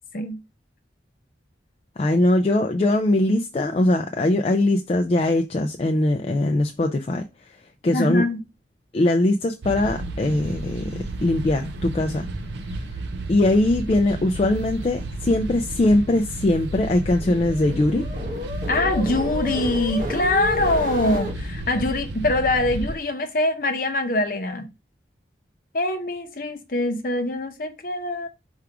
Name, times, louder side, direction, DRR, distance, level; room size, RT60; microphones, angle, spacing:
voice 1, 2.0-7.2 7.8-8.2 8.9-12.3 13.3-18.1, left 1 dB, 35° left, 0.3 m, -21 dB
voice 2, 7.9-8.4 18.7-24.7 25.7-28.3, left 2 dB, 50° left, 0.7 m, -24 dB
sound 1, 9.6-23.0, right 1 dB, 75° right, 0.6 m, -32 dB
sound 2, 16.6-21.3, left 2 dB, 45° right, 1.3 m, -32 dB
4.6 x 2.4 x 4.8 m
head